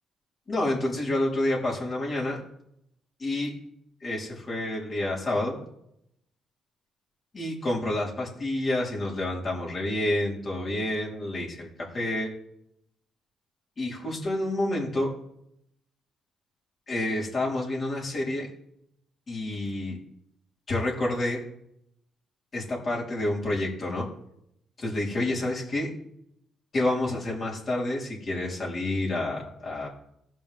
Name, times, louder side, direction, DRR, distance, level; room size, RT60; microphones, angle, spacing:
voice 1, 0.5-2.4 3.2-3.5 4.0-5.6 7.3-12.3 13.8-15.1 16.9-18.5 19.3-20.0 20.7-21.4 22.5-24.1 24.8-25.9 26.7-29.9, left 1 dB, 40° left, -4 dB, 4.1 m, -29 dB
16.0 x 5.5 x 3.7 m, 0.75 s
cardioid pair, 90°, 0 cm